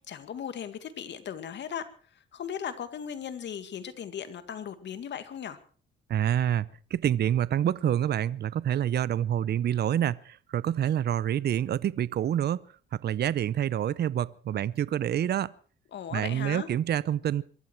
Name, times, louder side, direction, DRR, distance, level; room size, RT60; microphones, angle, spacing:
voice 1, 0.1-5.6 15.9-16.7, left 8 dB, 65° left, 2.1 m, -37 dB
voice 2, 6.1-12.6 12.9-15.5 16.1-17.4, right 10 dB, 55° right, 0.7 m, -27 dB
23.0 x 14.0 x 4.6 m
cardioid pair, 90°, 20 cm